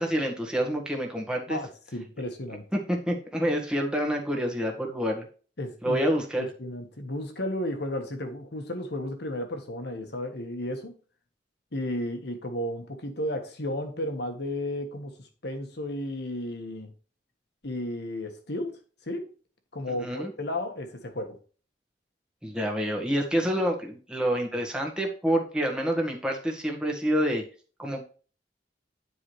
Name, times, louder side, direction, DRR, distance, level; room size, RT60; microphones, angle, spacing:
voice 1, 0.0-1.6 2.7-5.2 5.8-6.4 19.9-20.3 22.4-27.4 27.8-28.0, equal, 5° right, 1.6 m, -27 dB
voice 2, 1.5-2.6 5.6-6.0 6.3-11.0 11.7-16.9 17.6-18.8 19.1-19.3 19.7-21.4, left 1 dB, 65° left, 1.5 m, -33 dB
9.6 x 4.9 x 3.3 m
head